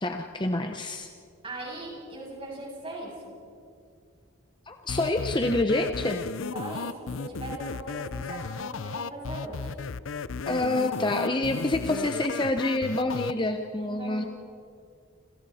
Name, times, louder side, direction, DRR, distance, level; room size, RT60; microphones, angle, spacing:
voice 1, 0.0-1.1 4.7-6.2 10.5-14.3, left 2 dB, 20° left, 5 dB, 0.8 m, -27 dB
voice 2, 1.4-3.3 6.5-9.7 13.8-14.3, right 2 dB, 25° right, -3 dB, 7.6 m, -39 dB
sound 1, 4.9-13.3, left 4 dB, 70° left, 0.6 m, -34 dB
29.0 x 27.5 x 4.3 m, 2.3 s
head